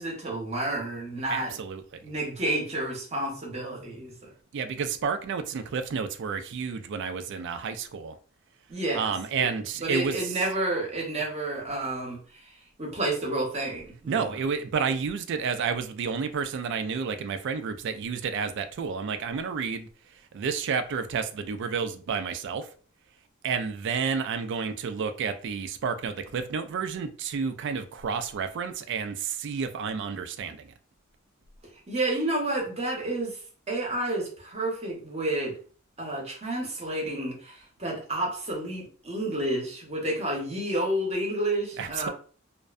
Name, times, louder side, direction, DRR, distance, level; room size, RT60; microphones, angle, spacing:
voice 1, 0.0-1.5 2.0-4.3 8.7-9.4 9.8-14.4 31.9-33.4 33.7-35.6 36.0-42.1, right 1 dB, 30° right, 0.8 m, -30 dB
voice 2, 1.3-1.8 4.5-8.2 8.9-10.4 14.1-19.9 20.3-22.7 23.4-30.7 41.8-42.1, right 5 dB, 60° right, 0.3 m, -30 dB
2.5 x 2.1 x 2.4 m
head